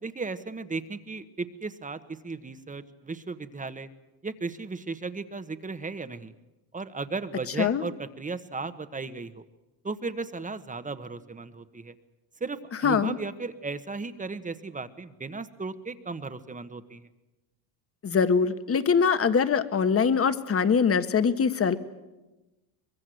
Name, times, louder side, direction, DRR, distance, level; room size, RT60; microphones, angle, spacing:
voice 1, 0.0-3.9 4.2-6.3 6.7-9.4 9.8-11.9 12.4-17.1, right 4 dB, 15° right, 11 dB, 1.3 m, -35 dB
voice 2, 12.8-13.2 18.0-21.8, left 6 dB, 30° left, 11 dB, 1.5 m, -23 dB
24.0 x 21.5 x 7.8 m, 1.1 s
cardioid pair, 105°, 43 cm